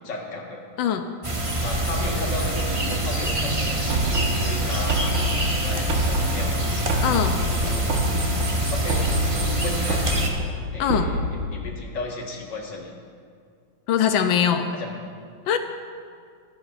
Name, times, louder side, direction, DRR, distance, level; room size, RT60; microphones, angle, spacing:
voice 1, 0.0-0.6 1.6-7.0 7.5-10.0 10.7-12.9 14.7-14.9, left 2 dB, 70° left, -1 dB, 2.3 m, -35 dB
sound 1, 1.2-10.3, right 1 dB, 20° right, 1.1 m, -25 dB
sound 2, 3.9-11.7, equal, 80° right, 1.9 m, -28 dB
voice 2, 7.0-7.4 10.8-11.1 13.9-14.7 15.5-15.6, left 8 dB, 85° left, 7 dB, 1.5 m, -21 dB
22.0 x 10.5 x 2.5 m, 2.1 s
omnidirectional pair, 2.1 m